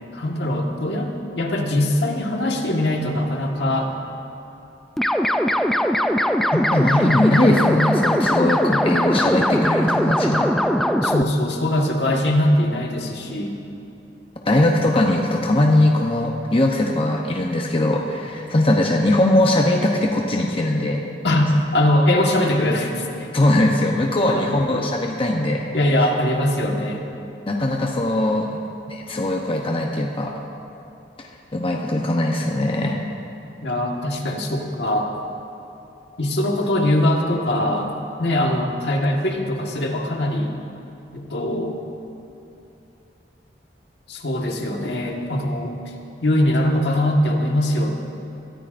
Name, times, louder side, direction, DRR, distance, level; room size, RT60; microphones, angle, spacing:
voice 1, 0.1-3.9 11.0-13.6 21.2-23.3 24.3-24.9 25.7-27.1 33.6-35.1 36.2-37.9 38.2-40.5 41.1-41.8 44.1-45.8 46.2-47.9, left 1 dB, 70° left, 1 dB, 1.6 m, -21 dB
sound 1, 5.0-11.2, equal, ahead, 0.4 m, -20 dB
voice 2, 6.5-10.5 14.4-21.1 23.3-25.6 27.5-28.6 28.9-30.3 31.2-33.0, left 1 dB, 30° left, 0 dB, 0.8 m, -20 dB
23.0 x 14.0 x 2.6 m, 2.8 s
head